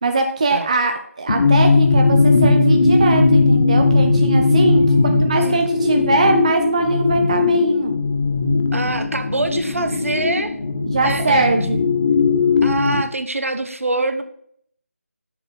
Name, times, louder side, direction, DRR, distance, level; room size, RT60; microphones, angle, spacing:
voice 1, 0.0-7.9 10.9-11.8, right 3 dB, 30° right, 5 dB, 0.5 m, -21 dB
sound 1, 1.3-13.0, left 3 dB, 40° left, 0.6 m, -17 dB
voice 2, 8.7-10.6 11.0-11.5 12.6-14.2, right 2 dB, 65° right, 9 dB, 0.8 m, -24 dB
6.7 x 4.7 x 4.3 m, 0.66 s
figure-of-eight pair, 160°, 8 cm